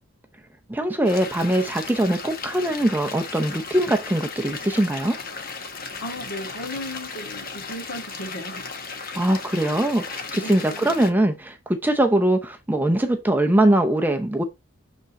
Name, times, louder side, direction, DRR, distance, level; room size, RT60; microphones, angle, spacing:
voice 1, 0.7-5.2 9.1-14.4, right 1 dB, 10° right, 0.6 m, -22 dB
sound 1, 1.1-11.1, left 4 dB, 40° left, 1.2 m, -35 dB
voice 2, 6.0-8.7 9.5-9.8 10.3-11.0, left 1 dB, 60° left, 2.2 m, -36 dB
8.1 x 3.7 x 4.1 m
head